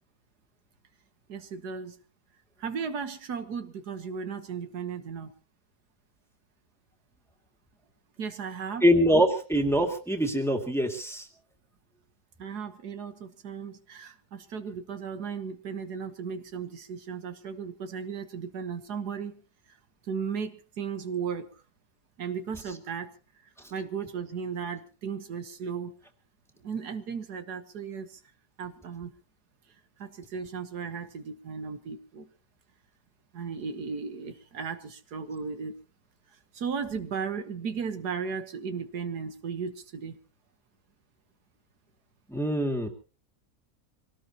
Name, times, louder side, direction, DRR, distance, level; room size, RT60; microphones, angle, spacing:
voice 1, 1.3-2.0 2.6-5.3 8.2-8.9 12.4-19.4 19.7-19.8 20.0-21.5 22.2-23.1 23.4-25.9 26.6-28.2 28.6-29.1 30.0-32.3 33.3-35.8 36.3-40.2, right 6 dB, 80° right, 9 dB, 1.8 m, -36 dB
voice 2, 8.8-11.3 42.3-42.9, equal, ahead, 3 dB, 2.2 m, -24 dB
25.5 x 18.0 x 2.9 m, 0.35 s
omnidirectional pair, 1.7 m